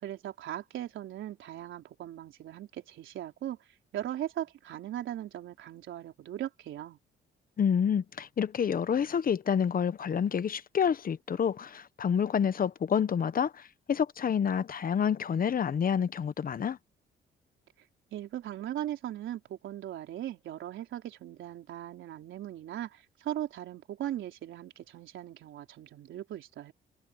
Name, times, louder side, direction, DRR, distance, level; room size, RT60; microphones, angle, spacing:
voice 1, 0.0-3.6 3.9-7.0 18.1-26.7, right 12 dB, 75° right, 4.1 m, -39 dB
voice 2, 7.6-16.8, left 7 dB, 45° left, 1.1 m, -28 dB
cardioid pair, 90°, 20 cm